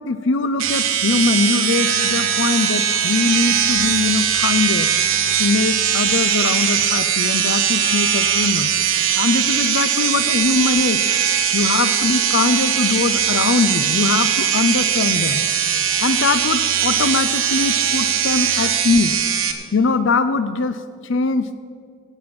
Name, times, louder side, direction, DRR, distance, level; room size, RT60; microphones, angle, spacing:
voice 1, 0.0-4.9 5.4-8.7 9.1-11.0 11.5-15.4 16.0-19.1 19.7-21.5, left 4 dB, 60° left, 12 dB, 0.5 m, -21 dB
sound 1, 0.6-19.5, right 8 dB, 75° right, 1.2 m, -20 dB
16.0 x 8.7 x 6.0 m, 2.2 s
head